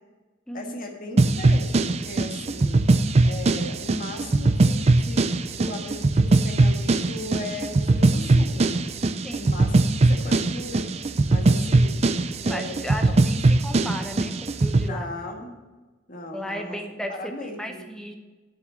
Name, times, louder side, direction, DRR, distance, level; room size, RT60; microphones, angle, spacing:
voice 1, 0.5-2.8 3.2-5.3 5.6-8.7 9.3-10.8 11.3-12.0 12.4-13.2 14.8-15.6 16.1-16.8 17.1-17.9, left 2 dB, 45° left, 2 dB, 1.5 m, -37 dB
sound 1, 1.2-14.9, right 2 dB, 35° right, 0.4 m, -21 dB
voice 2, 9.2-9.5 12.5-15.1 16.3-18.1, equal, 5° left, 4 dB, 0.8 m, -35 dB
7.7 x 6.8 x 7.5 m, 1.2 s
head